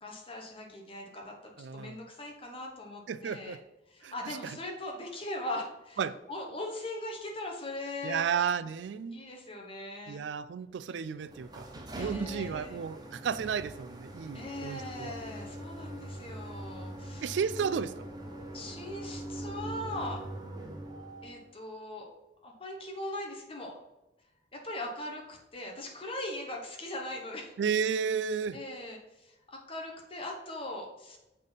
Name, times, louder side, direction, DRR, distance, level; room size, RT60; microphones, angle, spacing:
voice 1, 0.0-3.6 3.9-6.0 6.3-8.2 9.1-10.2 11.9-12.8 14.3-17.4 18.5-20.2 21.2-22.1 22.4-23.8 24.5-27.5 28.5-31.2, left 1 dB, 30° left, 1 dB, 1.3 m, -40 dB
voice 2, 1.6-2.0 3.1-3.6 4.0-4.6 6.0-6.2 8.0-9.2 10.1-11.7 11.9-15.1 17.2-17.9 27.6-28.6, right 6 dB, 80° right, 15 dB, 0.4 m, -33 dB
sound 1, 11.2-21.5, right 1 dB, 25° right, 0.8 m, -42 dB
6.7 x 5.4 x 4.1 m, 0.97 s
head